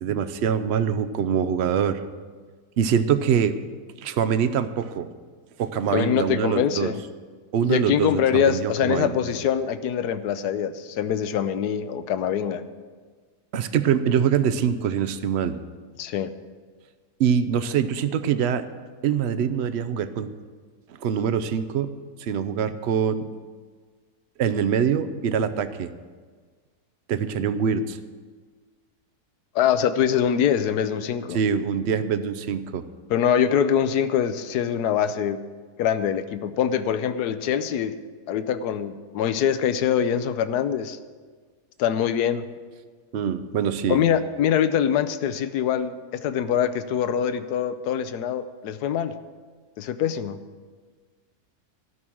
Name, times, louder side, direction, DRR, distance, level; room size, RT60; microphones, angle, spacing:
voice 1, 0.0-2.0 2.8-3.6 4.0-5.1 5.6-6.9 7.5-9.2 13.5-15.6 17.2-18.6 19.0-20.3 21.0-21.9 22.2-23.3 24.4-25.9 27.1-28.0 31.3-32.8 43.1-44.0, right 7 dB, 60° right, 11 dB, 0.7 m, -24 dB
voice 2, 5.9-7.0 7.7-12.6 16.0-16.3 29.5-31.4 33.1-35.4 35.8-38.0 38.3-41.0 41.8-42.4 43.9-49.2 49.8-50.4, left 9 dB, 80° left, 12 dB, 1.2 m, -24 dB
12.5 x 6.2 x 8.7 m, 1.5 s
omnidirectional pair, 1.7 m